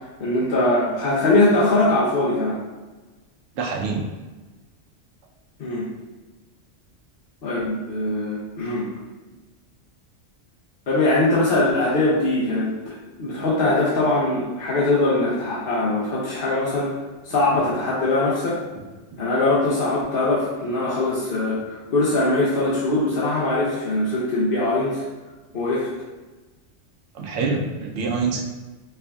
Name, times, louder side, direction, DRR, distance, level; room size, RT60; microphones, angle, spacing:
voice 1, 0.2-2.6 5.6-5.8 7.4-8.9 10.9-16.9 17.2-18.6 19.2-25.0 25.5-25.9, left 2 dB, 55° left, -8 dB, 0.8 m, -21 dB
voice 2, 3.6-4.0 27.1-28.4, right 4 dB, 80° right, 0 dB, 0.9 m, -25 dB
4.4 x 2.5 x 2.2 m, 1.2 s
omnidirectional pair, 1.2 m